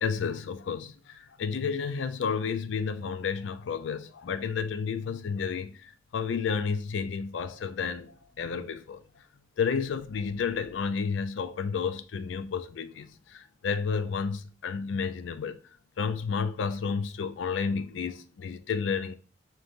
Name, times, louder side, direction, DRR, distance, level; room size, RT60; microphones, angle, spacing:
voice 1, 0.0-9.0 9.6-15.6 16.0-19.1, left 6 dB, 85° left, 0.4 m, -31 dB
5.0 x 2.9 x 2.6 m
head